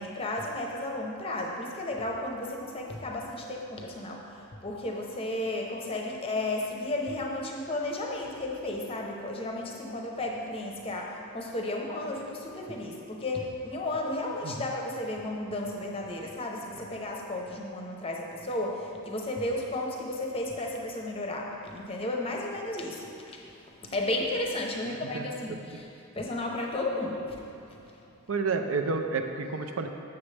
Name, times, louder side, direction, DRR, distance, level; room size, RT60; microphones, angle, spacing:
voice 1, 0.0-23.4 23.8-27.4 27.7-27.8, left 1 dB, 25° left, 0 dB, 0.7 m, -33 dB
voice 2, 24.8-25.2 28.3-29.9, right 4 dB, 65° right, 5 dB, 0.5 m, -30 dB
7.4 x 7.1 x 3.3 m, 2.8 s
head